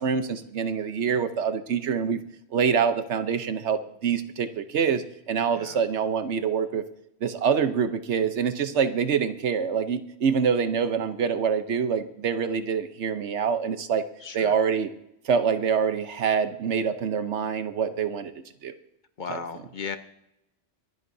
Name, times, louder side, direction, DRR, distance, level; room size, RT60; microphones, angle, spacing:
voice 1, 0.0-2.2 2.5-6.8 7.2-14.0 14.3-14.9 15.2-18.3 18.6-18.7, right 6 dB, 80° right, 10 dB, 1.2 m, -25 dB
voice 2, 14.2-14.5 19.2-20.0, left 5 dB, 45° left, 9 dB, 1.0 m, -36 dB
25.5 x 11.0 x 2.7 m, 0.83 s
omnidirectional pair, 1.2 m